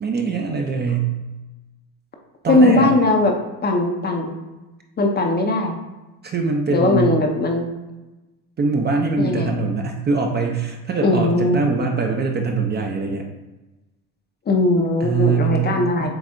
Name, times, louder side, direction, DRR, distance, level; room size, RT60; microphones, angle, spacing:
voice 1, 0.0-1.1 2.4-2.9 6.2-7.2 8.6-13.3 15.0-16.1, right 4 dB, 25° right, 2 dB, 0.5 m, -22 dB
voice 2, 2.5-4.3 5.0-5.8 6.7-7.7 9.2-9.5 11.0-11.6 14.5-16.1, left 2 dB, 25° left, 3 dB, 0.6 m, -19 dB
7.6 x 2.6 x 2.5 m, 1.1 s
supercardioid pair, 90°, 44 cm